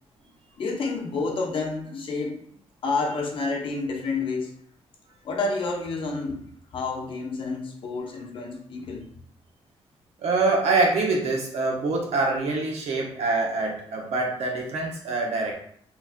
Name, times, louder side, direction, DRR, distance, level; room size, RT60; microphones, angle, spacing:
voice 1, 0.6-2.4 2.8-4.5 5.2-6.5 6.7-9.1, left 3 dB, 55° left, 1 dB, 0.7 m, -29 dB
voice 2, 10.2-15.5, right 3 dB, 80° right, 0 dB, 0.9 m, -25 dB
2.9 x 2.5 x 3.6 m, 0.62 s
wide cardioid pair, 160°, 11 cm